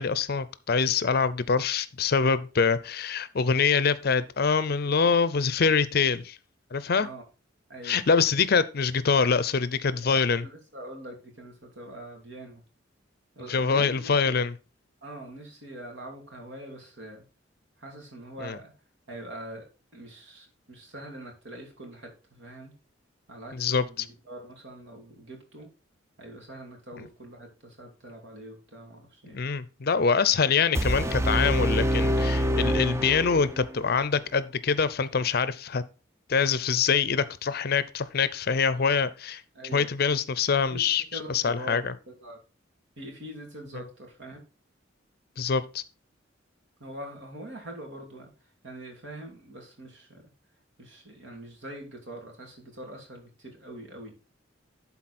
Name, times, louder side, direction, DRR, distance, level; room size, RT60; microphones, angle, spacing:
voice 1, 0.0-6.4 6.7-7.1 7.8-10.4 13.5-14.5 18.4-18.6 23.5-23.8 29.3-35.8 36.3-39.4 39.7-41.0 41.3-41.8 45.4-45.8, left 5 dB, 50° left, 0.5 m, -24 dB
voice 2, 9.9-12.6 13.3-14.4 15.0-17.2 17.8-18.7 19.1-19.7 19.9-22.7 23.3-25.7 26.2-29.4 39.5-39.9 40.7-40.8 41.1-42.4 43.0-44.4 46.8-48.3 48.6-50.3 50.8-54.1, right 1 dB, 70° right, 2.7 m, -43 dB
sound 1, 30.7-33.7, equal, 15° right, 0.5 m, -25 dB
11.5 x 4.2 x 4.2 m
head